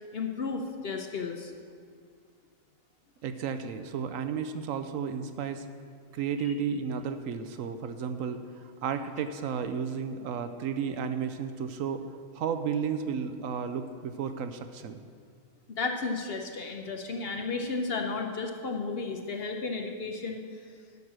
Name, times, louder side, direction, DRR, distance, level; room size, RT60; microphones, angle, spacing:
voice 1, 0.1-1.5 6.4-6.6 15.7-20.4, left 4 dB, 55° left, 4 dB, 0.8 m, -33 dB
voice 2, 3.2-5.7 6.1-12.0 12.3-15.1, right 6 dB, 70° right, 9 dB, 0.9 m, -33 dB
11.0 x 6.5 x 6.0 m, 2.1 s
omnidirectional pair, 1.5 m